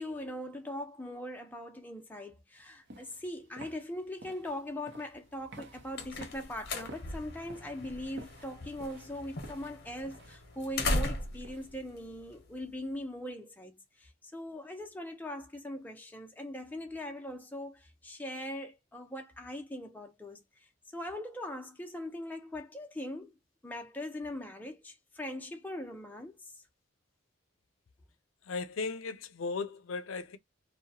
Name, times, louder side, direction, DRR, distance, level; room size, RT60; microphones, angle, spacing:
voice 1, 0.0-20.4 20.9-23.3 23.6-26.4, left 1 dB, 10° left, 0.5 m, -41 dB
sound 1, 2.6-11.8, right 1 dB, 60° right, 0.7 m, -52 dB
sound 2, 5.5-12.9, left 2 dB, 50° left, 0.8 m, -38 dB
voice 2, 28.4-30.4, left 4 dB, 90° left, 0.5 m, -36 dB
2.7 x 2.2 x 2.6 m
head